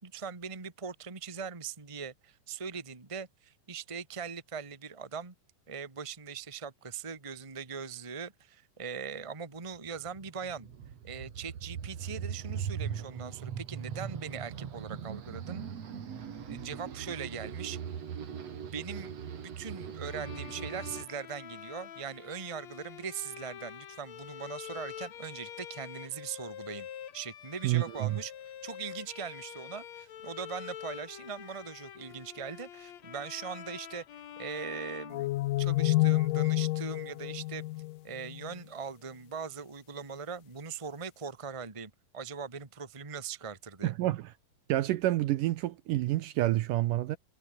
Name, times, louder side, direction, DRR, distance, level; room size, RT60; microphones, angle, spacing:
voice 1, 0.0-5.3 5.7-10.7 11.0-15.7 16.4-17.8 18.2-26.9 27.1-28.3 28.6-35.3 35.6-37.6 38.0-43.9, right 6 dB, 15° right, 1.1 m, -41 dB
sound 1, 9.7-21.0, right 8 dB, 50° right, 3.0 m, -40 dB
Bowed string instrument, 20.0-35.9, left 10 dB, 55° left, 2.5 m, -46 dB
voice 2, 27.6-28.2 43.8-44.2 44.7-47.2, right 15 dB, 75° right, 2.2 m, -28 dB
sound 2, 35.1-38.5, left 17 dB, 75° left, 2.2 m, -29 dB
omnidirectional pair, 4.3 m